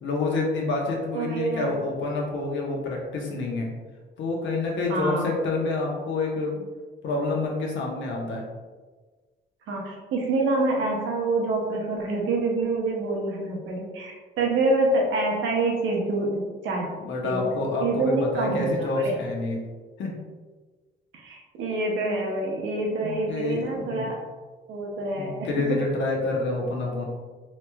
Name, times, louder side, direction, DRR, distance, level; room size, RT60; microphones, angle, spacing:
voice 1, 0.0-3.7 4.2-6.7 7.0-8.4 17.0-19.6 20.0-20.2 23.0-24.1 25.2-27.0, left 3 dB, 70° left, -1 dB, 0.8 m, -28 dB
voice 2, 1.1-1.7 4.9-5.3 9.7-16.9 17.2-17.5 17.8-19.1 21.1-24.2 24.7-25.8, right 2 dB, 80° right, -1 dB, 0.8 m, -26 dB
3.1 x 3.0 x 2.3 m, 1.4 s
cardioid pair, 90°, 20 cm